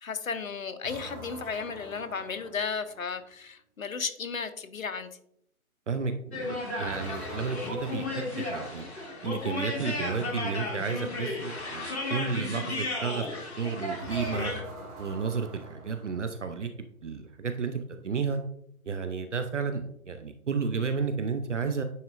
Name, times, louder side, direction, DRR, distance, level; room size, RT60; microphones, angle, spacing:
voice 1, 0.0-5.1, left 5 dB, 65° left, 10 dB, 0.8 m, -34 dB
sound 1, 0.8-3.2 6.8-9.3 14.0-16.6, right 1 dB, 25° right, 2.0 m, -45 dB
voice 2, 5.9-8.9 9.2-14.5 15.0-18.4 18.9-21.8, right 5 dB, 55° right, 8 dB, 0.6 m, -32 dB
sound 2, 6.3-14.6, left 2 dB, 50° left, 1.8 m, -34 dB
9.4 x 4.3 x 2.5 m, 0.71 s
figure-of-eight pair, 145°, 43 cm